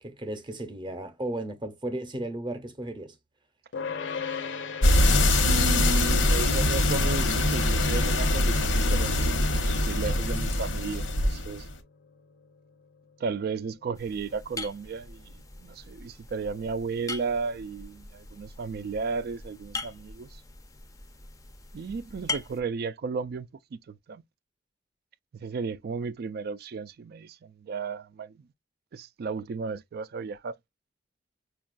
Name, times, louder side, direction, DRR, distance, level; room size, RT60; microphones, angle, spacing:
voice 1, 0.0-3.1, right 1 dB, 25° right, 0.7 m, -35 dB
sound 1, 3.7-15.0, left 5 dB, 70° left, 0.6 m, -41 dB
sound 2, 4.8-11.7, left 1 dB, 90° left, 0.9 m, -23 dB
voice 2, 5.2-11.7 13.2-15.3 15.6-20.3 21.7-24.2 25.3-28.3 28.9-30.6, right 4 dB, 55° right, 0.3 m, -34 dB
sound 3, 13.9-22.6, left 3 dB, 20° left, 0.5 m, -41 dB
5.2 x 2.3 x 2.3 m
head